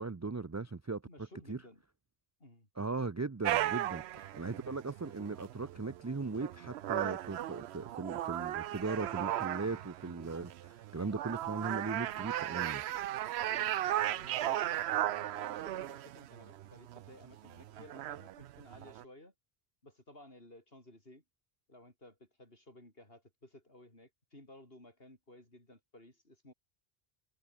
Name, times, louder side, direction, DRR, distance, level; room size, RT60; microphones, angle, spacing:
voice 1, 0.0-1.0 1.5-1.6 2.8-12.8, right 4 dB, 25° right, 0.4 m, -38 dB
voice 2, 1.1-1.8 2.4-2.7 13.4-19.3 19.8-21.2 21.7-26.5, left 1 dB, 65° left, 7.3 m, -56 dB
sound 1, 3.4-19.0, right 13 dB, 85° right, 0.8 m, -36 dB
omnidirectional pair, 1.1 m